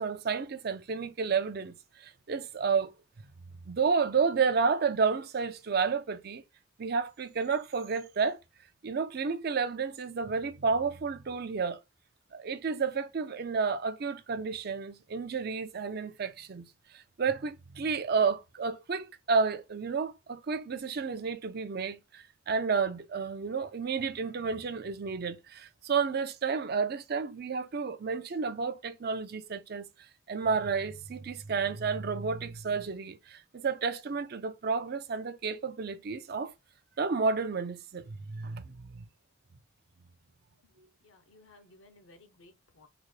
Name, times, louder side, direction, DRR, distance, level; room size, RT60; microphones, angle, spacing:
voice 1, 0.0-2.9 3.7-6.4 6.8-8.4 8.8-11.8 12.3-16.7 16.9-29.9 30.3-36.5 37.0-39.0, right 5 dB, 50° right, 0.4 m, -31 dB
voice 2, 41.0-42.9, left 2 dB, 75° left, 0.8 m, -58 dB
3.9 x 2.1 x 3.1 m
head